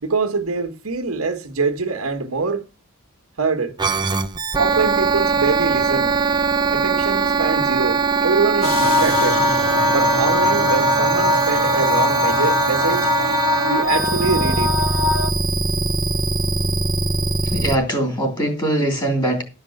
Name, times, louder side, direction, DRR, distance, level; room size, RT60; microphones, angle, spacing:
voice 1, 0.0-2.7 3.4-3.7 4.5-6.1 6.7-9.4 9.9-13.1 13.7-14.8, right 4 dB, 90° right, 1.5 m, -24 dB
sound 1, 3.8-17.8, right 4 dB, 20° right, 0.6 m, -21 dB
sound 2, 8.6-15.3, left 4 dB, 70° left, 1.8 m, -21 dB
voice 2, 17.4-19.4, right 1 dB, 20° left, 3.3 m, -21 dB
12.0 x 5.3 x 6.5 m
head